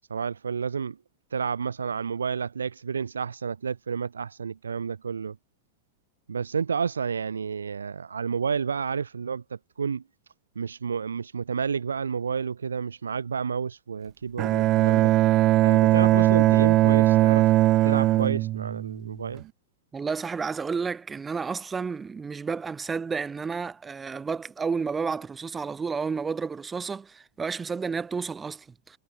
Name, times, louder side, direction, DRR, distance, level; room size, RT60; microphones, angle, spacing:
voice 1, 0.1-1.0 1.3-5.4 6.3-9.4 9.8-10.0 10.5-15.1 15.6-17.5 17.8-19.4, right 6 dB, 70° right, 1.7 m, -30 dB
Bowed string instrument, 14.4-19.4, right 15 dB, 35° right, 1.8 m, -20 dB
voice 2, 19.9-29.0, right 5 dB, 15° right, 7.3 m, -31 dB
figure-of-eight pair, 90°, 0 cm